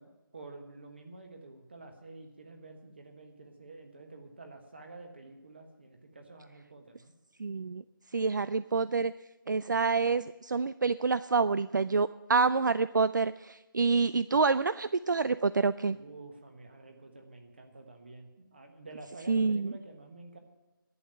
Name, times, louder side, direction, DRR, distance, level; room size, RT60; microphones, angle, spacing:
voice 1, 0.0-7.1 15.9-20.4, right 2 dB, 30° right, 4 dB, 1.4 m, -49 dB
voice 2, 7.4-7.8 8.1-9.1 9.5-16.0 19.3-19.7, right 4 dB, 60° right, 15 dB, 0.4 m, -27 dB
11.0 x 8.6 x 8.9 m, 1.1 s
figure-of-eight pair, 180°, 12 cm